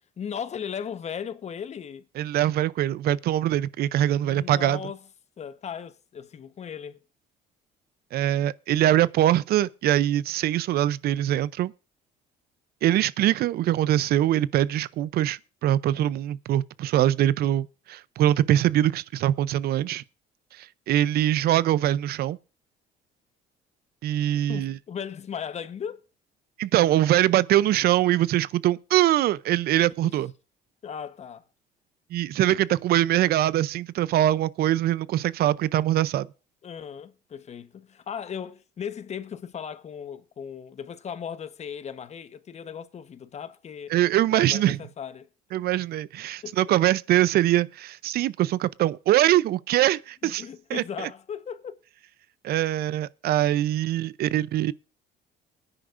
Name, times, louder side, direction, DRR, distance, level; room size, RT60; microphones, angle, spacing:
voice 1, 0.2-2.1 4.2-5.0 5.4-7.0 24.5-26.0 30.0-30.2 30.8-31.4 32.5-32.6 36.6-44.0 44.3-45.3 46.4-46.6 50.2-51.8, left 7 dB, 40° left, 1.1 m, -37 dB
voice 2, 2.2-4.8 8.1-11.7 12.8-20.0 20.6-22.4 24.0-24.8 26.6-30.3 32.1-36.3 43.9-44.8 45.5-50.4 50.7-50.8 52.4-54.7, right 13 dB, 65° right, 0.6 m, -23 dB
21.0 x 9.9 x 2.6 m
cardioid pair, 110°, 17 cm